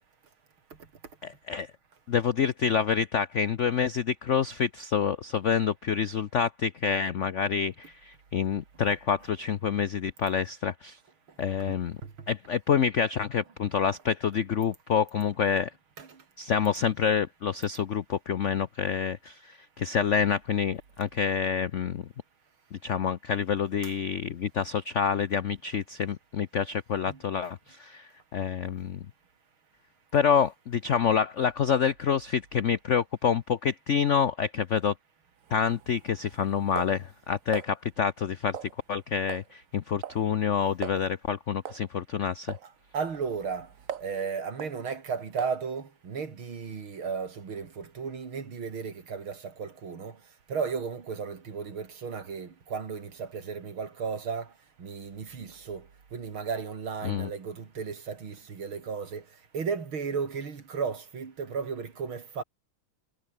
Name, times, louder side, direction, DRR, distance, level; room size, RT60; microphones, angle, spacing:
voice 1, 1.2-1.7 2.1-11.0 11.4-12.0 12.3-15.7 16.4-22.0 22.7-29.0 30.1-34.9 35.5-42.5 57.0-57.3, left 7 dB, 70° left, 0.6 m, -27 dB
sound 1, 35.4-37.7 38.5-39.0 39.3-39.5 39.8-40.2 40.5-40.6 40.8-41.0 41.6-41.9 42.5-42.7 43.1-44.2 44.6-44.8 45.4-45.6, right 9 dB, 50° right, 1.1 m, -40 dB
voice 2, 42.6-43.7 44.0-50.2 50.5-54.5 54.8-59.2 59.5-62.4, right 5 dB, 80° right, 3.6 m, -35 dB
omnidirectional pair, 2.3 m